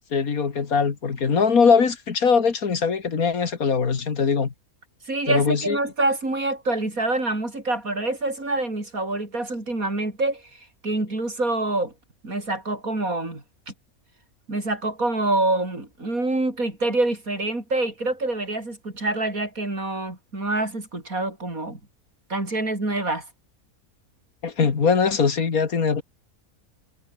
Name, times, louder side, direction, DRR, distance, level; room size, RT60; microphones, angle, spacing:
voice 1, 0.1-4.5 5.3-5.8 24.4-26.0, left 5 dB, 75° left, 2.4 m, -21 dB
voice 2, 5.1-11.9 12.2-13.7 14.5-21.8 22.3-23.3, right 2 dB, 75° right, 6.4 m, -26 dB
omnidirectional pair, 1.5 m